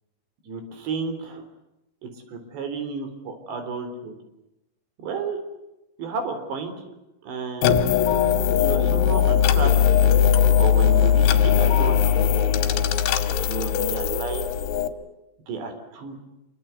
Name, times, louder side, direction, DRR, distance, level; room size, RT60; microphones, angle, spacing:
voice 1, 0.5-1.4 2.3-4.1 5.0-5.4 6.0-6.7 7.2-7.8 8.6-9.7 10.6-12.3 13.3-14.5 15.5-16.2, right 4 dB, 65° right, 7 dB, 5.9 m, -32 dB
sound 1, 7.6-14.9, left 8 dB, 85° left, 3.9 m, -19 dB
26.0 x 24.5 x 8.3 m, 0.93 s
omnidirectional pair, 5.4 m